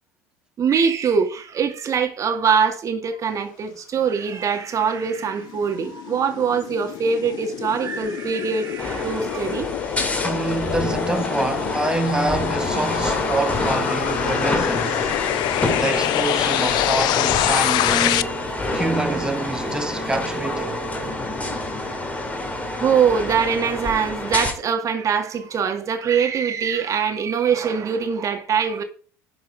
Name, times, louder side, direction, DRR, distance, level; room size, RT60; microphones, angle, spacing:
voice 1, 0.6-9.7 22.8-28.8, right 6 dB, 35° right, 2.2 m, -23 dB
sound 1, 5.0-18.2, left 16 dB, 55° left, 0.5 m, -26 dB
sound 2, 8.8-24.5, left 1 dB, 15° left, 2.5 m, -27 dB
voice 2, 10.2-15.1 15.8-18.4 18.7-20.8, right 2 dB, 10° right, 1.3 m, -26 dB
11.0 x 4.7 x 5.3 m
hypercardioid pair, 80°, 9 cm